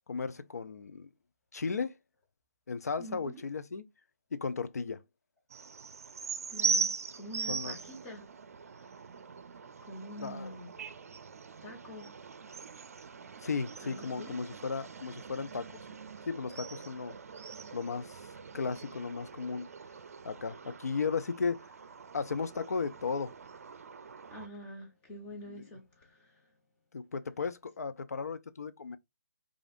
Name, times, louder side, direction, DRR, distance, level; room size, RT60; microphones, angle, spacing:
voice 1, 0.1-1.1 1.5-1.9 2.7-3.8 4.3-5.0 7.5-7.7 10.2-10.5 13.4-15.7 16.3-17.1 17.7-18.2 18.5-19.7 20.2-21.6 22.1-23.3 25.6-25.7 26.9-29.0, left 5 dB, 75° left, 0.5 m, -35 dB
voice 2, 3.0-3.4 6.5-8.2 8.7-9.0 9.8-10.7 11.6-12.1 13.8-14.4 24.3-26.5, equal, 15° left, 1.2 m, -46 dB
sound 1, 5.5-24.5, right 5 dB, 65° right, 0.5 m, -40 dB
4.9 x 2.5 x 2.5 m
hypercardioid pair, 155°, 9 cm